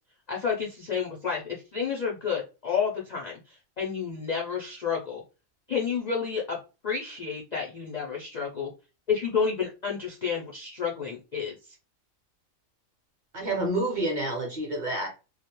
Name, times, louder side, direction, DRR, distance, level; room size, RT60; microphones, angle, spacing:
voice 1, 0.3-5.2 5.7-6.6 6.8-8.7 9.1-11.8, left 6 dB, 65° left, 0.4 m, -30 dB
voice 2, 13.3-15.1, right 1 dB, 45° right, 0.7 m, -28 dB
2.3 x 2.0 x 2.9 m
omnidirectional pair, 1.4 m